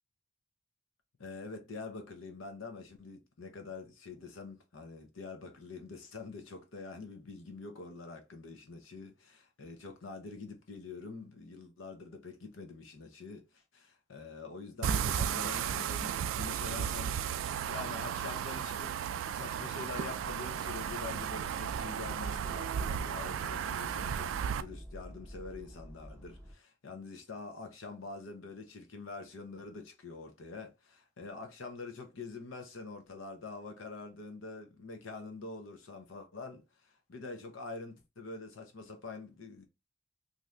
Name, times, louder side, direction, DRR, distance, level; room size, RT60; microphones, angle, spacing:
voice 1, 1.2-39.7, left 3 dB, 80° left, 0.7 m, -45 dB
sound 1, 14.8-24.6, right 8 dB, 80° right, 0.3 m, -34 dB
sound 2, 20.1-26.5, equal, 10° left, 0.7 m, -50 dB
2.7 x 2.5 x 3.2 m
head